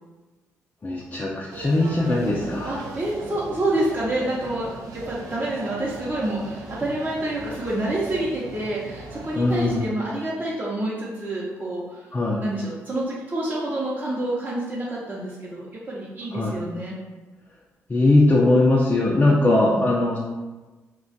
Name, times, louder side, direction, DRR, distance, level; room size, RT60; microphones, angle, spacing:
voice 1, 0.8-2.7 9.4-9.9 12.1-12.4 16.3-16.6 17.9-20.2, left 2 dB, 30° left, -5 dB, 0.5 m, -20 dB
sound 1, 1.5-9.9, right 2 dB, 70° right, 0.5 m, -38 dB
voice 2, 2.7-12.1 12.4-16.9 19.4-19.8, right 1 dB, 30° right, -7 dB, 0.8 m, -28 dB
2.4 x 2.3 x 4.0 m, 1.2 s
supercardioid pair, 55°, 6 cm